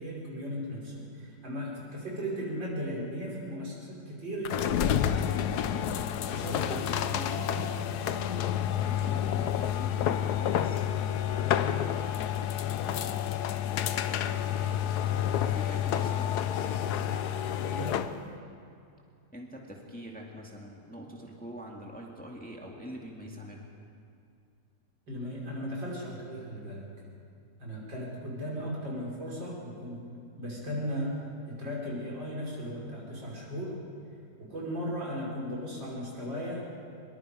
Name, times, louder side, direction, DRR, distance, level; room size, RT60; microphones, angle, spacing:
voice 1, 0.0-5.3 5.6-8.0 17.7-18.0 25.1-26.8 27.6-30.0 30.4-31.1 31.5-33.8 34.4-36.6, equal, 80° right, -4 dB, 5.9 m, -37 dB
sound 1, 4.4-18.2, left 10 dB, 65° left, 1.2 m, -29 dB
voice 2, 8.8-11.8 12.8-13.4 15.4-16.7 19.3-23.7, equal, 5° left, -1 dB, 2.0 m, -45 dB
23.5 x 22.5 x 5.1 m, 2.4 s
omnidirectional pair, 2.0 m